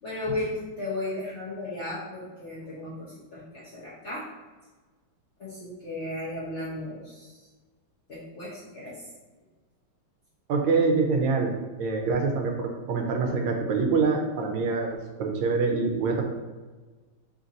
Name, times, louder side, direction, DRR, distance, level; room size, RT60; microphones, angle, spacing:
voice 1, 0.0-4.2 5.4-7.5 8.1-9.1, left 2 dB, 55° left, -9 dB, 0.7 m, -35 dB
voice 2, 10.5-11.5 11.8-16.2, right 4 dB, 85° right, 2 dB, 1.4 m, -25 dB
3.8 x 2.5 x 3.9 m, 1.3 s
omnidirectional pair, 2.2 m